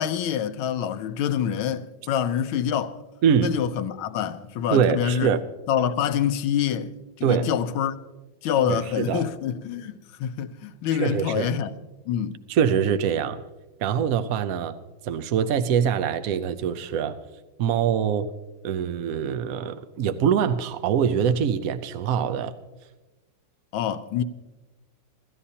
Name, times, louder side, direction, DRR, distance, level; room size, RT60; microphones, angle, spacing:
voice 1, 0.0-3.0 3.4-5.3 5.7-6.9 7.2-7.9 8.4-11.7 12.1-12.4 23.7-24.2, left 9 dB, 85° left, 1.6 m, -26 dB
voice 2, 3.2-3.5 4.7-5.4 7.2-7.5 8.6-9.2 11.0-11.5 12.5-13.4 13.8-14.8 15.0-17.2 17.6-18.3 18.6-22.5, right 8 dB, 70° right, 0.8 m, -24 dB
27.0 x 13.5 x 2.8 m
omnidirectional pair, 2.2 m